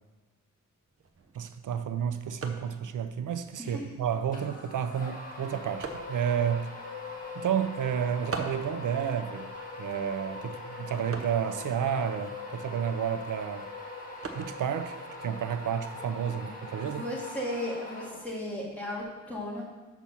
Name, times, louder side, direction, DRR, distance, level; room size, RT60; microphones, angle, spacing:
sound 1, 0.9-16.4, right 4 dB, 50° right, 0.8 m, -46 dB
voice 1, 1.4-6.8 7.4-9.5 9.8-13.7 14.3-17.0, right 8 dB, 85° right, 9 dB, 0.5 m, -31 dB
sound 2, 4.3-18.6, left 2 dB, 25° left, 1.7 m, -41 dB
voice 2, 16.8-19.6, left 1 dB, 5° left, -5 dB, 2.4 m, -36 dB
5.9 x 5.9 x 6.8 m, 1.2 s
wide cardioid pair, 120°, 30 cm